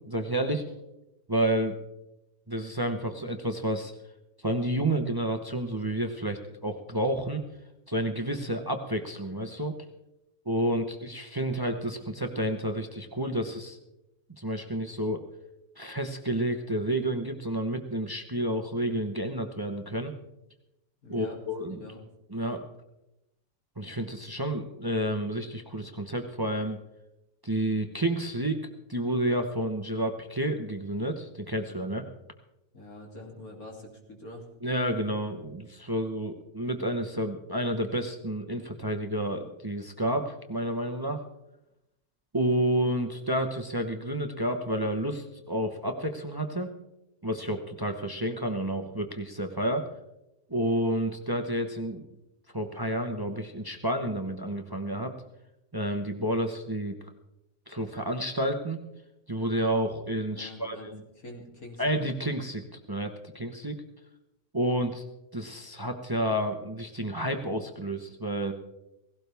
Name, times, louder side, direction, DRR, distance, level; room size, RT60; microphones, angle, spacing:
voice 1, 0.1-0.6 1.3-1.8 2.5-3.9 4.4-7.4 7.9-9.8 10.5-13.8 14.4-15.2 15.8-20.1 21.1-21.8 22.3-22.6 23.8-26.8 27.4-32.0 34.6-41.2 42.3-46.7 47.2-49.8 50.5-52.0 52.5-55.1 55.7-57.0 57.7-58.8 59.3-60.8 61.8-63.8 64.5-65.0 65.3-68.5, right 1 dB, 20° right, 6 dB, 0.8 m, -30 dB
voice 2, 21.0-21.4 21.7-22.0 32.7-34.5 60.3-62.0, left 2 dB, 90° left, 0 dB, 3.4 m, -45 dB
17.5 x 17.0 x 3.5 m, 0.91 s
omnidirectional pair, 1.5 m